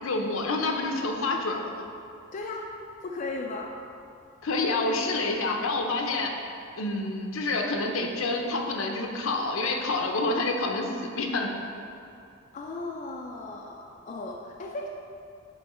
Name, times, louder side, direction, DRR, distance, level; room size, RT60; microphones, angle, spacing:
voice 1, 0.0-1.8 4.4-6.3 6.8-11.5, left 2 dB, 70° left, 2 dB, 0.7 m, -28 dB
voice 2, 2.3-3.8 12.0-12.1 12.5-14.9, left 2 dB, 35° left, 0 dB, 0.3 m, -36 dB
8.2 x 3.1 x 4.3 m, 2.6 s
head